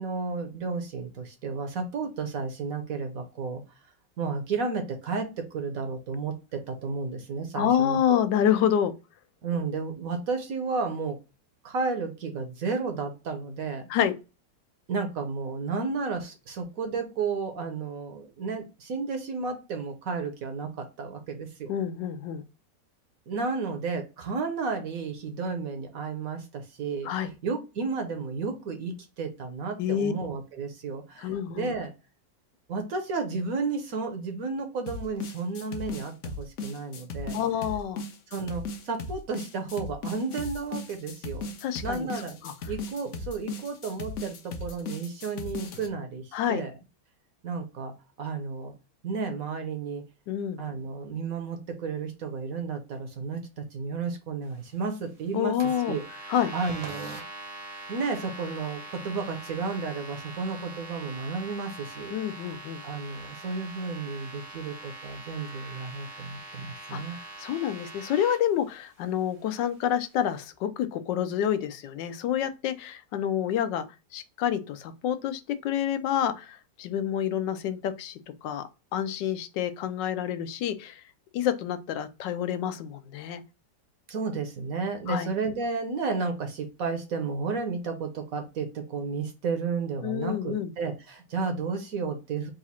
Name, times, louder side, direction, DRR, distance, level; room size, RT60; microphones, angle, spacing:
voice 1, 0.0-3.6 4.2-8.2 9.4-11.2 11.6-13.9 14.9-21.8 23.3-31.9 32.7-37.4 38.3-41.5 41.8-42.4 42.7-46.7 47.4-47.9 48.2-48.7 49.0-50.0 50.6-55.6 55.9-57.2 57.9-67.2 84.1-92.5, right 4 dB, 65° right, 1.0 m, -32 dB
voice 2, 7.5-8.9 13.9-14.1 21.7-22.4 27.0-27.3 29.8-30.1 31.2-31.7 37.3-38.0 41.6-42.1 42.4-42.5 46.3-46.6 50.3-50.6 55.3-56.0 56.3-56.5 62.1-62.8 66.9-67.0 67.4-73.8 74.1-78.1 78.4-78.6 78.9-81.0 81.3-83.4 85.1-85.3 90.0-90.7, left 9 dB, 90° left, 1.3 m, -28 dB
sound 1, 34.9-45.9, left 3 dB, 60° left, 0.8 m, -37 dB
sound 2, 55.6-68.4, right 2 dB, 90° right, 1.9 m, -43 dB
4.0 x 2.4 x 4.1 m
omnidirectional pair, 1.9 m